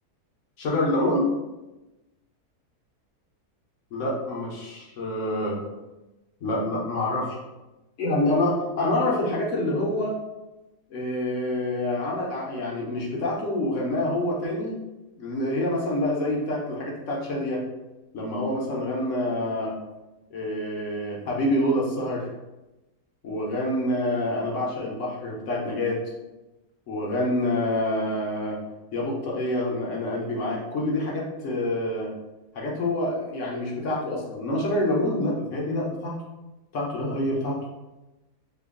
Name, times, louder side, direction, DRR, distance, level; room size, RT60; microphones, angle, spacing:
voice 1, 0.6-1.3 3.9-5.6 6.4-7.4 8.0-10.2 10.9-14.8 15.2-17.6 18.1-19.7 20.3-22.3 23.2-26.0 26.9-28.6 28.9-32.1 32.5-36.2 36.7-37.6, left 1 dB, 65° left, -2 dB, 0.8 m, -27 dB
2.8 x 2.3 x 3.5 m, 1.0 s
omnidirectional pair, 1.7 m